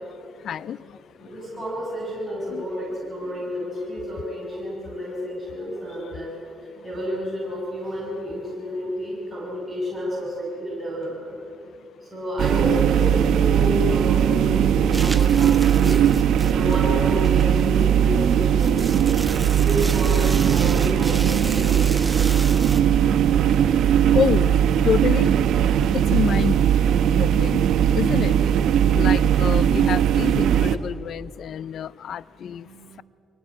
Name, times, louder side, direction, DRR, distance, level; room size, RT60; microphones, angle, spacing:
voice 1, 0.2-1.3 2.5-2.6 3.2-3.4 5.9-6.2 15.0-15.2 24.1-25.3 25.9-26.7 27.1-27.7 27.9-28.4 28.9-32.7, left 8 dB, 65° left, 21 dB, 0.4 m, -28 dB
voice 2, 1.2-6.3 6.8-11.4 12.0-16.0 16.5-18.9 19.4-22.2 32.4-33.0, equal, ahead, -6 dB, 7.2 m, -30 dB
sound 1, 12.4-30.8, right 9 dB, 75° right, 0.9 m, -19 dB
sound 2, 14.9-22.8, right 2 dB, 20° right, 1.0 m, -35 dB
23.5 x 18.5 x 8.8 m, 2.7 s
cardioid pair, 90°, 0 cm